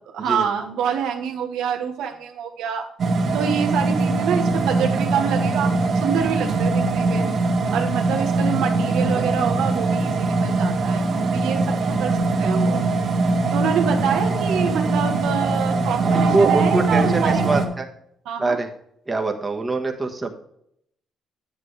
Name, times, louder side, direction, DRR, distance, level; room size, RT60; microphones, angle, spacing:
voice 1, 0.1-2.9 3.3-7.3 7.7-12.8 13.5-17.4 18.2-18.6, right 7 dB, 90° right, 3 dB, 1.3 m, -26 dB
sound 1, 3.0-17.7, right 3 dB, 55° right, 1.7 m, -21 dB
voice 2, 16.0-17.9 18.4-18.7 19.1-20.4, right 3 dB, 20° right, 3 dB, 1.4 m, -24 dB
9.1 x 8.0 x 3.3 m, 0.72 s
cardioid pair, 90°, 0 cm